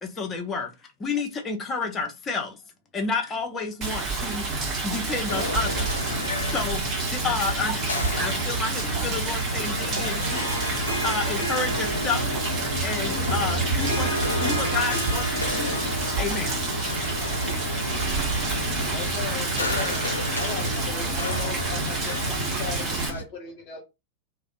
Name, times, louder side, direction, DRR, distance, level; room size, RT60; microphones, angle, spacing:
voice 1, 0.0-0.7 1.0-2.6 2.9-4.5 4.8-6.1 6.4-6.8 7.1-7.9 8.2-10.5 11.0-12.4 12.8-14.2 14.4-15.8 16.2-16.5, left 4 dB, 20° left, 0.7 m, -30 dB
Rain, 3.8-23.1, right 3 dB, 30° right, 0.9 m, -29 dB
sound 1, 5.3-23.2, left 1 dB, 75° left, 0.4 m, -31 dB
Harp, 10.1-18.8, equal, 85° right, 0.8 m, -34 dB
voice 2, 18.9-20.1 20.4-23.8, left 6 dB, 40° left, 1.1 m, -37 dB
2.6 x 2.0 x 2.5 m
figure-of-eight pair, 90°, 0 cm